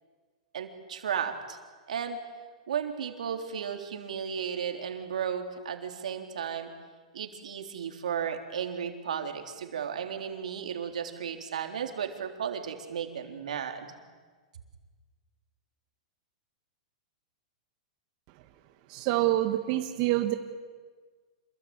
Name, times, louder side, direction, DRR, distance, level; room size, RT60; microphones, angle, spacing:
voice 1, 0.5-1.6 1.9-2.2 2.7-6.7 7.1-13.9, right 7 dB, 85° right, 5 dB, 3.6 m, -34 dB
voice 2, 18.9-20.3, right 15 dB, 45° right, 6 dB, 1.6 m, -26 dB
27.0 x 21.5 x 8.9 m, 1.5 s
hypercardioid pair, 140°, 4 cm